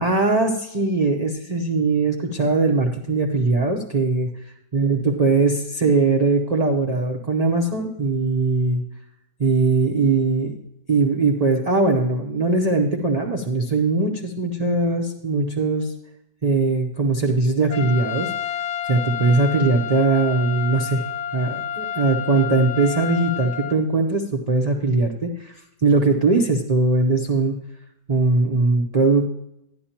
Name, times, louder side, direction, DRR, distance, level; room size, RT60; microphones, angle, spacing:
voice 1, 0.0-4.3 4.7-8.8 9.4-10.6 10.9-15.9 16.4-18.3 18.9-21.0 21.3-25.5 25.8-27.5 28.1-29.3, right 3 dB, 40° right, 0 dB, 0.5 m, -20 dB
Trumpet, 17.7-23.8, left 9 dB, 70° left, 1.1 m, -30 dB
11.5 x 10.5 x 2.9 m, 0.83 s
omnidirectional pair, 1.8 m